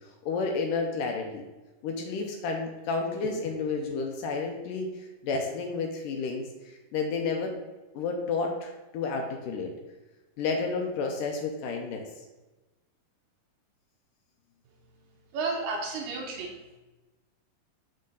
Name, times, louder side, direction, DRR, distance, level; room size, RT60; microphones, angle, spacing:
voice 1, 0.2-1.4 1.8-4.9 5.2-6.5 6.9-7.5 7.9-9.7 10.4-12.1, left 4 dB, 75° left, 3 dB, 2.2 m, -30 dB
voice 2, 15.3-16.8, right 3 dB, 75° right, 1 dB, 2.3 m, -32 dB
6.4 x 6.3 x 3.9 m, 1.1 s
omnidirectional pair, 4.3 m